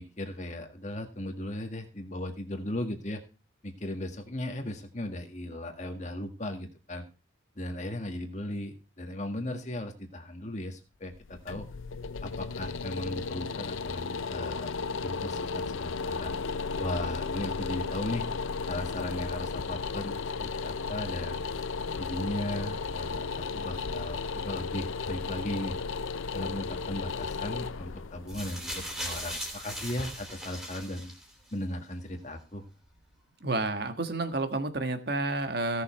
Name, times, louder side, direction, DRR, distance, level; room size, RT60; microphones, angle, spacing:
voice 1, 0.0-3.2 3.6-7.1 7.6-11.7 12.2-14.7 15.0-16.3 16.8-18.3 18.7-21.5 22.0-25.8 26.3-31.1 31.5-32.7, left 1 dB, 35° left, 5 dB, 1.8 m, -37 dB
sound 1, 11.1-30.0, left 4 dB, 85° left, 0.6 m, -35 dB
sound 2, 28.3-31.5 32.4-32.5, equal, 5° right, 3.0 m, -38 dB
voice 2, 33.4-35.8, right 2 dB, 55° right, 8 dB, 1.4 m, -30 dB
16.5 x 6.8 x 4.4 m, 0.32 s
head